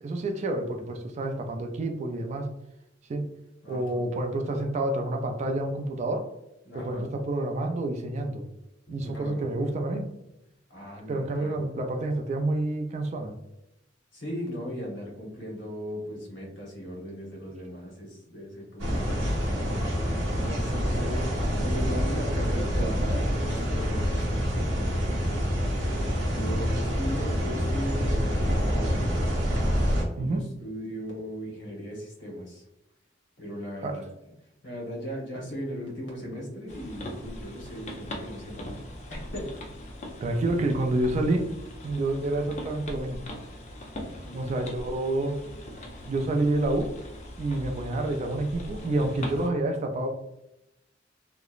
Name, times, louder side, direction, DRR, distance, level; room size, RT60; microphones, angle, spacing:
voice 1, 0.0-2.5 3.1-3.3 3.7-6.2 6.7-8.4 8.9-10.1 11.1-13.3 30.2-30.4 33.8-34.0 40.2-41.4 41.8-43.2 44.3-45.4 46.1-46.9 47.4-50.1, right 2 dB, 40° right, 4 dB, 0.3 m, -28 dB
voice 2, 3.6-4.1 6.6-7.1 8.9-9.7 10.7-11.8 14.1-19.8 20.4-21.3 21.6-25.8 26.2-29.5 30.1-32.6 33.4-34.1 34.6-38.8 39.1-39.5 44.2-44.6, equal, 70° left, -2 dB, 1.0 m, -38 dB
sound 1, 18.8-30.0, equal, 90° right, 0.6 m, -27 dB
sound 2, 36.7-49.5, left 1 dB, 40° left, 0.4 m, -40 dB
2.9 x 2.0 x 2.3 m, 0.88 s
head